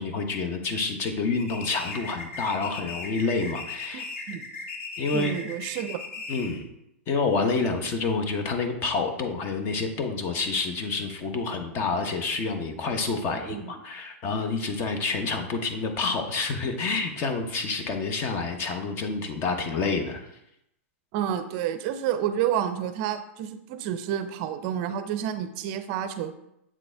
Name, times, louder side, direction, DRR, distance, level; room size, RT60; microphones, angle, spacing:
voice 1, 0.0-4.1 5.0-5.3 6.3-6.6 7.1-20.3, left 4 dB, 35° left, 6 dB, 0.9 m, -28 dB
sound 1, 1.4-6.6, left 3 dB, 85° left, 1.5 m, -37 dB
voice 2, 3.9-4.5 5.1-6.0 13.3-13.8 21.1-26.3, right 10 dB, 45° right, 10 dB, 0.5 m, -30 dB
7.4 x 4.0 x 3.4 m, 0.81 s
hypercardioid pair, 135°, 7 cm